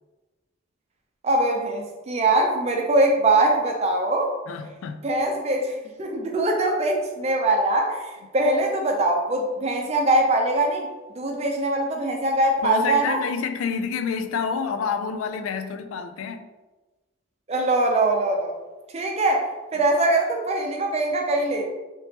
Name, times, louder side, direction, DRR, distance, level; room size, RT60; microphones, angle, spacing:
voice 1, 1.2-4.3 5.0-10.9 11.2-13.2 17.5-18.5 18.9-19.5 19.7-21.7, right 2 dB, 30° right, 1 dB, 0.5 m, -22 dB
voice 2, 4.5-5.1 12.6-16.5, left 6 dB, 85° left, 7 dB, 0.3 m, -28 dB
3.4 x 2.9 x 2.8 m, 1.2 s
head